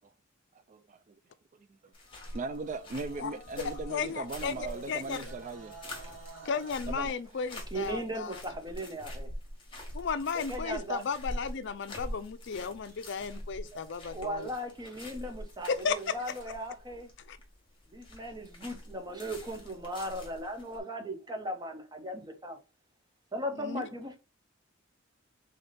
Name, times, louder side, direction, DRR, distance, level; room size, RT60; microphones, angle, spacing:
voice 1, 0.7-1.1 2.3-5.7 6.9-7.1, right 3 dB, 35° right, 0.3 m, -38 dB
sound 1, 1.9-20.8, left 1 dB, 25° left, 1.5 m, -45 dB
sound 2, 2.1-6.7, right 2 dB, 80° right, 2.0 m, -50 dB
voice 2, 3.6-5.3 6.4-8.4 9.9-14.5 15.7-16.1 17.3-17.4 23.6-23.8, left 5 dB, 60° left, 0.5 m, -34 dB
voice 3, 7.7-9.3 10.3-11.0 13.7-17.1 17.9-22.6 23.3-24.2, right 1 dB, 20° right, 0.8 m, -38 dB
3.8 x 3.5 x 4.0 m
head